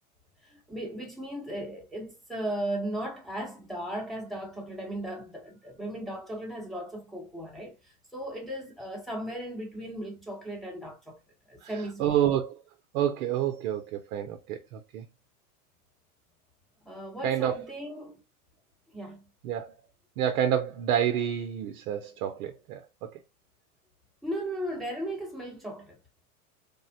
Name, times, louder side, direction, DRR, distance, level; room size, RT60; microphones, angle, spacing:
voice 1, 0.4-11.2 11.5-12.1 16.8-18.2 18.9-19.2 24.2-26.0, right 1 dB, ahead, 0.8 m, -36 dB
voice 2, 12.0-12.6 12.9-15.0 17.2-17.5 19.4-19.7 20.2-23.1, right 10 dB, 65° right, 0.6 m, -28 dB
3.4 x 2.0 x 2.6 m
hypercardioid pair, 125°, 46 cm